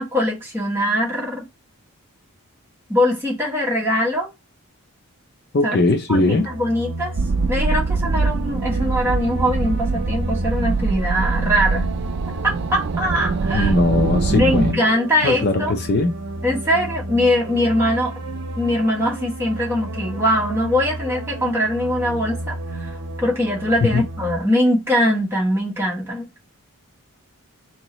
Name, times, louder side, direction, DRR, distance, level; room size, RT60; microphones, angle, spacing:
voice 1, 0.0-1.4 2.9-4.3 5.6-5.8 6.1-7.1 7.5-11.9 12.4-13.7 14.3-15.7 16.4-18.1 18.6-22.9 23.2-26.4, left 1 dB, 10° right, 1.0 m, -21 dB
voice 2, 5.5-6.5 13.5-14.8 15.2-16.1 23.8-24.0, left 3 dB, 45° left, 0.5 m, -20 dB
sound 1, 6.1-24.4, right 1 dB, 75° right, 0.7 m, -32 dB
sound 2, 7.2-14.7, right 4 dB, 50° right, 0.3 m, -23 dB
3.8 x 2.9 x 3.0 m
head